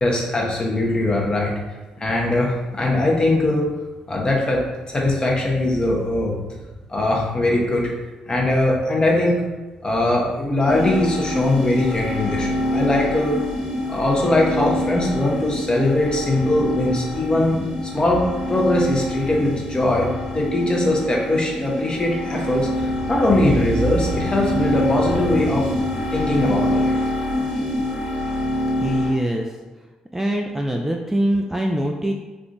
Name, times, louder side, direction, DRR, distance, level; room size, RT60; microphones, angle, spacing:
voice 1, 0.0-1.5 2.0-3.7 4.1-6.3 6.9-7.9 8.3-9.4 9.8-13.4 13.9-17.6 17.9-25.8 26.1-27.0, left 1 dB, 30° left, -2 dB, 0.9 m, -21 dB
sound 1, 10.7-29.1, left 1 dB, 55° left, 1.5 m, -26 dB
voice 2, 28.8-29.5 30.1-32.1, right 1 dB, 10° right, 1 dB, 0.3 m, -23 dB
3.4 x 2.4 x 2.6 m, 1.2 s
hypercardioid pair, 45°, 3 cm